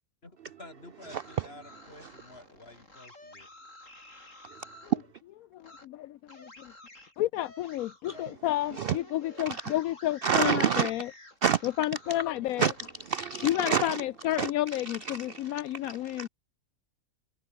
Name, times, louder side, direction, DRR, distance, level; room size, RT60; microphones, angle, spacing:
voice 1, 0.2-3.5 8.1-8.2, left 2 dB, 45° left, 4.2 m, -50 dB
sound 1, 1.0-5.0 5.6-5.9 6.3-12.3 12.6-14.4, left 2 dB, 65° left, 7.0 m, -52 dB
voice 2, 1.1-1.5 4.9-5.0 8.8-9.0 10.2-10.9 11.4-11.6 12.6-12.7 13.1-14.0 14.4-14.5 15.3-15.4 16.2-16.3, right 8 dB, 65° right, 0.5 m, -26 dB
voice 3, 5.8-6.7 7.2-11.1 11.6-12.7 13.4-16.3, left 14 dB, 85° left, 1.1 m, -30 dB
omnidirectional pair, 1.5 m